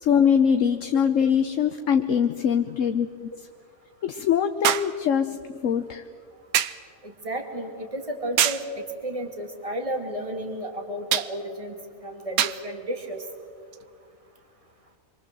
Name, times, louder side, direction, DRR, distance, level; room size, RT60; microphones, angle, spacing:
voice 1, 0.0-3.1 4.0-6.0, left 7 dB, 65° left, 7 dB, 1.2 m, -22 dB
sound 1, 0.9-1.0 4.6-5.0 6.5-6.9 8.4-8.7 11.1-11.4 12.4-12.7 13.7-13.8, right 10 dB, 85° right, 1.3 m, -24 dB
voice 2, 7.0-13.3, right 1 dB, 25° right, 3 dB, 2.8 m, -33 dB
28.0 x 23.5 x 7.7 m, 2.2 s
omnidirectional pair, 1.5 m